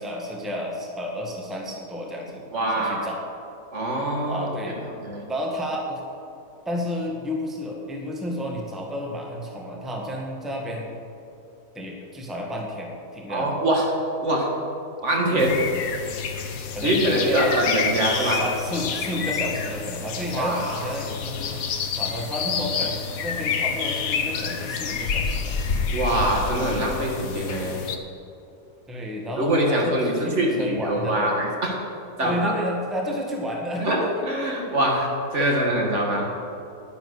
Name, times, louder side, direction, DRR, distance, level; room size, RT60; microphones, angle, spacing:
voice 1, 0.0-2.4 2.8-3.2 4.3-4.8 5.3-6.0 6.6-10.9 11.7-13.5 16.7-21.6 22.0-25.6 28.9-31.4 32.2-34.4 35.4-35.6, equal, ahead, -1 dB, 1.5 m, -31 dB
voice 2, 2.5-3.1 3.7-4.5 5.0-5.2 13.3-13.8 14.2-14.5 15.0-15.6 16.8-18.4 20.3-20.8 25.9-27.8 29.4-31.7 32.2-32.5 33.8-36.3, right 1 dB, 50° right, -1 dB, 2.1 m, -24 dB
sound 1, 15.4-28.0, left 6 dB, 70° left, 1.3 m, -28 dB
10.5 x 10.5 x 6.4 m, 2.7 s
omnidirectional pair, 1.6 m